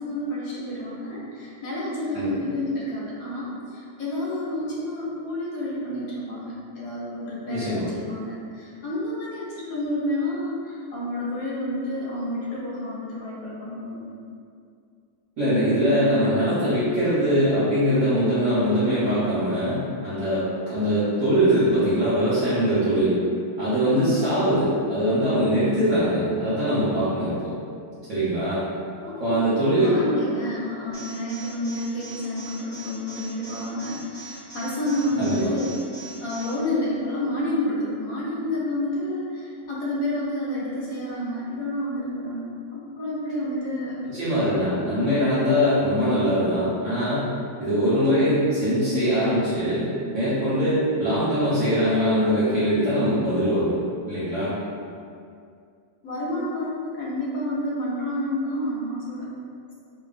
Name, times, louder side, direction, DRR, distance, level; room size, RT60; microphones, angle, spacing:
voice 1, 0.0-14.0 24.0-24.2 29.0-35.7 36.2-44.0 56.0-59.3, left 1 dB, 70° left, -6 dB, 0.9 m, -29 dB
voice 2, 7.5-7.9 15.4-23.1 23.6-27.5 28.1-28.6 29.2-29.9 30.2-30.3 35.2-35.5 44.0-47.3 47.6-49.9 50.1-53.8 54.1-54.6, equal, 65° right, -12 dB, 0.8 m, -22 dB
Alarm, 30.9-36.5, right 4 dB, 85° right, 0.4 m, -41 dB
2.8 x 2.1 x 2.4 m, 2.3 s
omnidirectional pair, 1.8 m